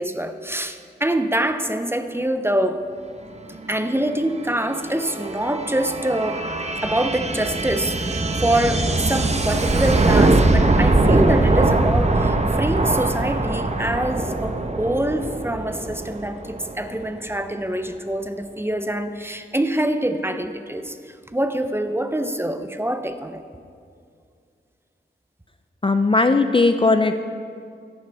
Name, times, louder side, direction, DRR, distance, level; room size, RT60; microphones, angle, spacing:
voice 1, 0.0-2.9 3.5-6.4 6.8-23.4, right 1 dB, 10° right, 9 dB, 0.7 m, -25 dB
sound 1, 3.6-17.1, right 2 dB, 35° right, 0.9 m, -22 dB
Acoustic guitar, 9.5-13.1, right 6 dB, 85° right, 0.7 m, -39 dB
voice 2, 25.8-27.1, left 3 dB, 25° left, 8 dB, 0.4 m, -17 dB
14.0 x 11.0 x 3.5 m, 2.3 s
wide cardioid pair, 60°, 20 cm